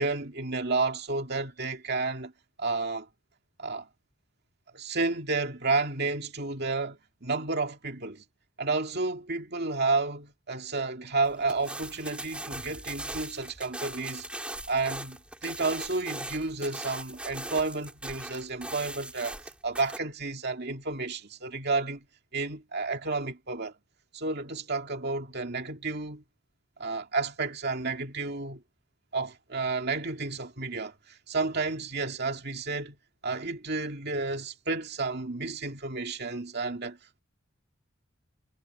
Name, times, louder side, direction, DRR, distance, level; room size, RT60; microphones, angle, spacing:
voice 1, 0.0-2.3 2.6-3.1 3.6-3.9 4.7-8.2 8.6-14.2 14.7-22.0 22.3-23.7 24.1-26.2 26.8-28.6 29.1-33.0 33.2-37.0, right 3 dB, 50° right, 2.5 m, -31 dB
sound 1, 11.2-20.0, right 1 dB, 5° right, 3.6 m, -40 dB
head